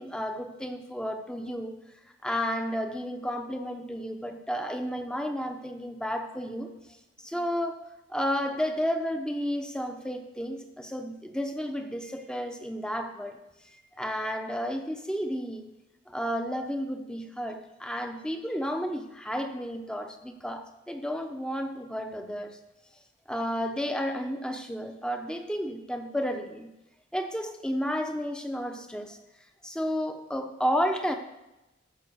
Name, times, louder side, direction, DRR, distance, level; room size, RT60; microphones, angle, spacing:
voice 1, 0.0-1.7 2.2-7.8 8.1-13.4 13.6-15.7 16.1-22.6 23.3-26.7 27.1-29.2 29.6-31.1, equal, 5° left, 5 dB, 0.9 m, -32 dB
14.0 x 5.8 x 7.0 m, 0.98 s
head